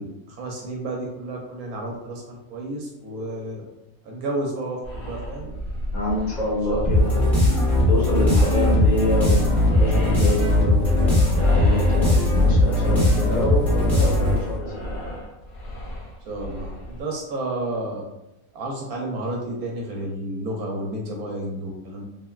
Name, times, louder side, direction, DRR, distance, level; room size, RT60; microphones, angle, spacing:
voice 1, 0.0-3.6 4.0-5.5 6.7-6.9 16.2-18.0 18.5-22.0, right 1 dB, 80° right, -1 dB, 1.0 m, -31 dB
sound 1, 4.8-17.0, equal, 70° left, 1.4 m, -34 dB
voice 2, 5.9-7.2 7.9-14.8, left 2 dB, 35° left, -6 dB, 0.9 m, -27 dB
sound 2, 6.9-14.6, left 1 dB, ahead, 0.9 m, -19 dB
3.3 x 2.1 x 2.3 m, 0.90 s
omnidirectional pair, 1.5 m